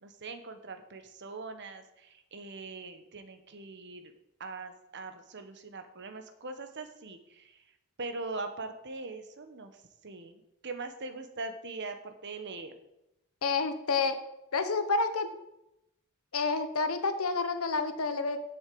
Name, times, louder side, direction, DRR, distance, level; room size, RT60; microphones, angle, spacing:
voice 1, 0.0-4.1 4.4-7.6 8.0-9.7 10.0-12.7, right 3 dB, 55° right, 8 dB, 1.2 m, -41 dB
voice 2, 13.4-14.2 14.5-15.3 16.3-18.5, left 4 dB, 75° left, 9 dB, 1.1 m, -29 dB
8.0 x 7.2 x 7.8 m, 0.89 s
head